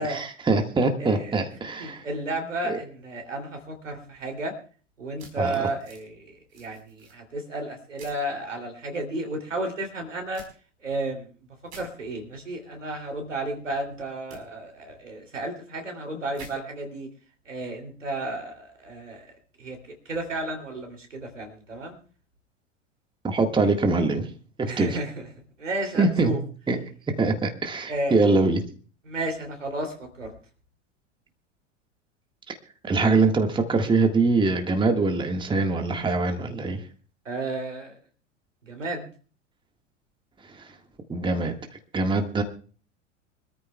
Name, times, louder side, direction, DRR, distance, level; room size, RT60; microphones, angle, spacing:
voice 1, 0.0-2.0 2.6-2.8 5.4-5.5 23.2-24.3 24.6-25.0 26.0-26.3 26.7-26.8 27.1-28.6 32.5-32.6 32.8-36.8 40.5-40.7 41.1-41.6 41.9-42.4, right 3 dB, 15° right, 5 dB, 1.7 m, -23 dB
voice 2, 1.0-1.4 1.8-4.5 5.0-10.4 10.8-11.3 11.7-17.1 17.4-22.0 24.6-25.3 25.6-26.4 27.9-28.3 29.0-30.3 37.2-38.0 38.6-39.1, right 1 dB, 75° right, 5 dB, 3.1 m, -33 dB
sound 1, 5.2-6.0 6.5-7.2 8.0-8.2 10.3-10.5 11.7-11.9 14.3-14.4 16.3-16.5, right 3 dB, 60° right, 4.6 m, -46 dB
25.0 x 13.5 x 2.3 m, 0.40 s
figure-of-eight pair, 85°, 37 cm